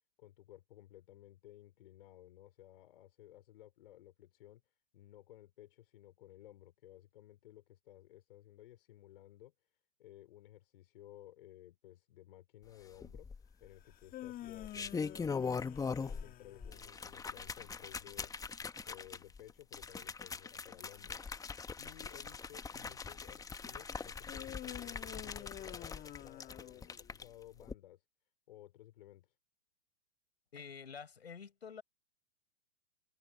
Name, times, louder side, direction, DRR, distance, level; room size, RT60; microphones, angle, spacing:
voice 1, 0.2-4.6 4.9-9.5 10.0-13.3 13.6-18.3 18.8-21.2 21.8-28.0 28.5-29.3, left 14 dB, 60° left, 3.8 m, -57 dB
sound 1, 13.0-13.7 14.5-16.3 16.6-27.2 27.6-27.7, left 5 dB, 10° left, 1.2 m, -41 dB
sound 2, 13.9-17.1 24.3-27.2, left 13 dB, 30° left, 1.8 m, -49 dB
voice 2, 30.5-31.8, left 6 dB, 80° left, 6.4 m, -48 dB
hypercardioid pair, 105°, 31 cm